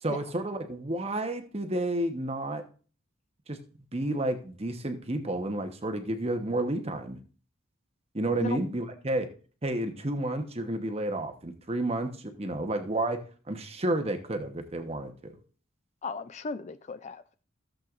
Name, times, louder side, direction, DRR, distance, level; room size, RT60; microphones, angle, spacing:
voice 1, 0.0-2.6 3.5-3.6 3.9-7.2 8.1-9.3 9.6-13.2 13.5-15.3, right 1 dB, 30° right, 7 dB, 1.0 m, -31 dB
voice 2, 16.0-17.4, left 4 dB, 35° left, 12 dB, 0.3 m, -36 dB
15.0 x 7.6 x 2.5 m, 0.39 s
head